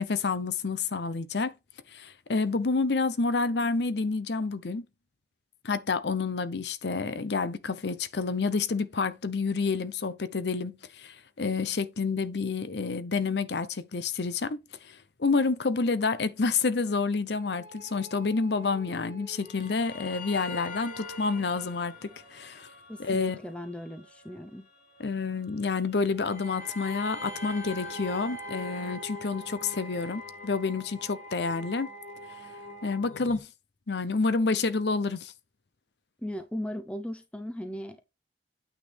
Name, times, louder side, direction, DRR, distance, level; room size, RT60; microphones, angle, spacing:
voice 1, 0.0-1.5 1.9-4.8 5.6-22.7 23.0-23.4 25.0-31.9 32.8-33.5 33.9-35.3, left 4 dB, 75° left, 0.7 m, -29 dB
sound 1, 17.3-33.4, left 2 dB, 45° left, 1.6 m, -43 dB
voice 2, 22.9-24.7 36.2-38.1, equal, 5° left, 0.6 m, -37 dB
9.0 x 6.3 x 3.5 m
head